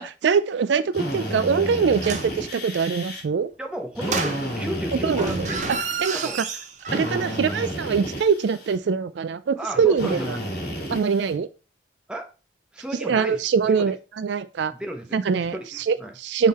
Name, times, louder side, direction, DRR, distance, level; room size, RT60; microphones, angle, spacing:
voice 1, 0.0-3.5 5.0-5.3 6.0-6.2 6.9-10.4 10.9-11.5 13.0-14.7 15.1-16.5, right 6 dB, 70° right, 14 dB, 0.4 m, -23 dB
Drill, 0.9-3.2 3.9-6.2 6.9-8.8 10.0-11.3, equal, 55° left, 2.7 m, -31 dB
sound 1, 1.9-2.4 4.0-4.8 5.1-7.4 7.6-7.7, right 4 dB, 40° right, 0.7 m, -31 dB
voice 2, 3.6-5.8 6.1-6.4 7.1-7.3 9.6-10.3 10.6-10.8 12.1-12.3 12.7-13.9 14.7-15.7 16.0-16.1, right 1 dB, 5° right, 3 dB, 0.9 m, -34 dB
6.4 x 3.8 x 4.1 m, 0.32 s
head